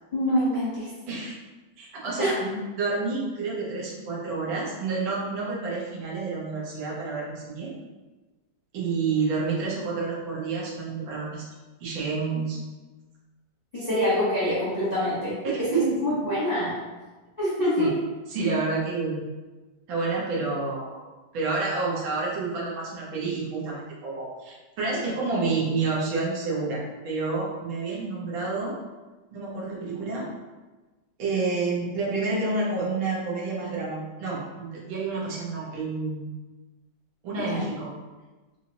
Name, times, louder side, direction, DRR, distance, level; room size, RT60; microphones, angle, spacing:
voice 1, 0.1-0.9 2.2-2.4 13.7-15.4 15.7-16.7 17.4-17.9 37.5-37.6, left 1 dB, 30° left, -10 dB, 0.8 m, -25 dB
voice 2, 1.1-1.4 1.8-7.7 8.7-11.4 11.8-12.6 15.4-16.0 17.8-17.9 18.3-19.2 19.9-21.0 21.3-28.8 29.3-30.3 31.2-36.3 37.2-37.9, right 3 dB, 80° right, -5 dB, 1.7 m, -29 dB
3.9 x 2.8 x 2.8 m, 1.2 s
omnidirectional pair, 2.1 m